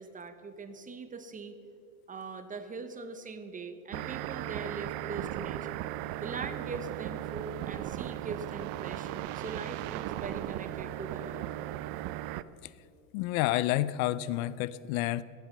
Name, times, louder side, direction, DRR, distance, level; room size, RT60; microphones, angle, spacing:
voice 1, 0.0-1.5 2.1-5.8 6.2-9.1 9.3-11.5, right 4 dB, 20° right, 9 dB, 0.9 m, -41 dB
sound 1, 3.9-12.4, right 14 dB, 55° right, 0.6 m, -37 dB
voice 2, 13.1-15.2, left 15 dB, 65° left, 18 dB, 0.6 m, -29 dB
15.0 x 9.2 x 6.6 m, 2.5 s
supercardioid pair, 125°, 45 cm